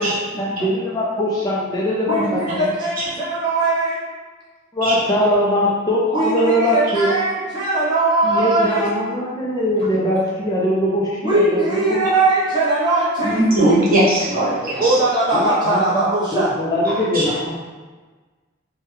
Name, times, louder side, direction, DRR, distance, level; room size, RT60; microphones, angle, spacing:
voice 1, 0.0-2.4 4.7-7.1 8.2-12.0 15.3-17.6, left 1 dB, 20° left, -6 dB, 0.3 m, -21 dB
voice 2, 2.1-4.0 6.1-8.9 11.2-13.4 14.8-16.5, right 2 dB, 20° right, -9 dB, 0.9 m, -20 dB
voice 3, 13.2-15.0 16.8-17.3, right 1 dB, 45° right, -9 dB, 1.1 m, -19 dB
3.2 x 2.1 x 3.1 m, 1.4 s
head